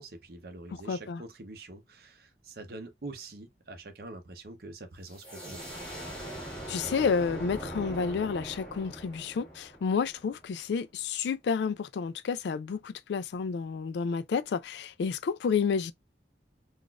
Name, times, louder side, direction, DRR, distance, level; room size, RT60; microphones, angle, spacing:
voice 1, 0.0-5.6, right 2 dB, 55° right, 0.6 m, -45 dB
voice 2, 0.7-1.2 6.7-15.9, left 5 dB, 70° left, 0.3 m, -30 dB
sound 1, 5.0-10.6, right 1 dB, 5° left, 1.6 m, -41 dB
3.9 x 2.5 x 2.2 m
head